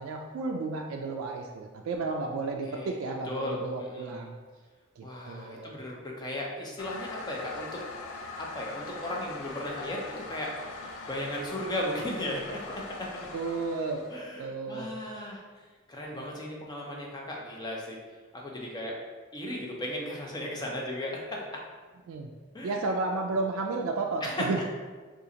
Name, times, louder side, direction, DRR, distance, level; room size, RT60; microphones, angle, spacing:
voice 1, 0.0-4.4 5.0-5.7 13.3-14.0 14.4-14.9 22.1-22.3 22.6-24.6, right 3 dB, 75° right, 2 dB, 0.3 m, -32 dB
voice 2, 2.6-3.0 3.2-4.2 5.0-7.7 8.4-10.5 11.1-13.3 14.1-15.4 15.9-18.0 18.3-18.9 19.3-21.6 22.5-22.8 24.2-24.6, left 1 dB, 20° left, -2 dB, 0.5 m, -36 dB
Toilet flush, 6.8-14.3, left 3 dB, 85° left, 0.4 m, -41 dB
2.8 x 2.4 x 3.8 m, 1.4 s
head